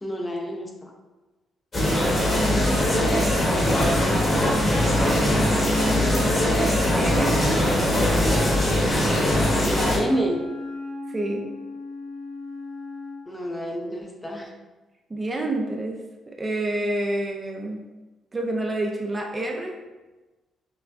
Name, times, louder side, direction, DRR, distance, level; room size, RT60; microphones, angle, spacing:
voice 1, 0.0-0.9 9.6-10.5 13.3-14.5, equal, 15° left, 1 dB, 0.6 m, -29 dB
sound 1, 1.7-10.0, left 1 dB, 35° left, 1.4 m, -21 dB
voice 2, 2.3-3.2 5.1-6.4 7.0-7.4 11.1-11.4 15.1-16.0 16.3-17.8 18.3-19.7, right 2 dB, 25° right, 1 dB, 0.5 m, -29 dB
Wind instrument woodwind instrument, 3.6-13.2, left 2 dB, 55° right, 1.3 m, -36 dB
5.7 x 2.2 x 2.6 m, 1.2 s
cardioid pair, 90°, 0 cm